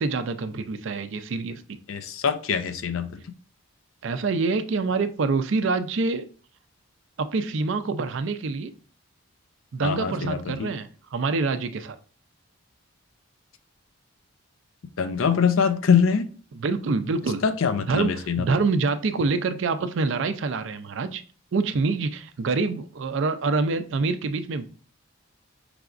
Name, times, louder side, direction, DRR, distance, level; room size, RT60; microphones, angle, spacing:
voice 1, 0.0-1.8 4.0-6.2 7.2-8.7 9.7-12.0 16.6-17.4 17.9-18.1 18.4-21.2 21.5-24.7, right 4 dB, 65° right, 10 dB, 0.4 m, -26 dB
voice 2, 1.9-3.2 9.8-10.7 15.0-16.3 17.4-18.5, left 6 dB, 75° left, 10 dB, 0.4 m, -23 dB
4.8 x 3.3 x 2.5 m, 0.39 s
head